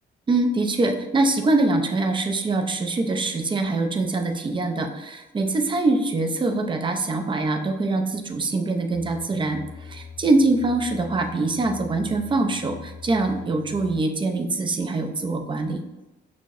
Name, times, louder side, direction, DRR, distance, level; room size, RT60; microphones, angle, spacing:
voice 1, 0.3-15.8, right 2 dB, 25° right, 5 dB, 0.5 m, -24 dB
sound 1, 8.9-14.0, left 6 dB, 85° left, 0.6 m, -42 dB
6.0 x 2.1 x 2.4 m, 1.0 s
cardioid pair, 90°, 20 cm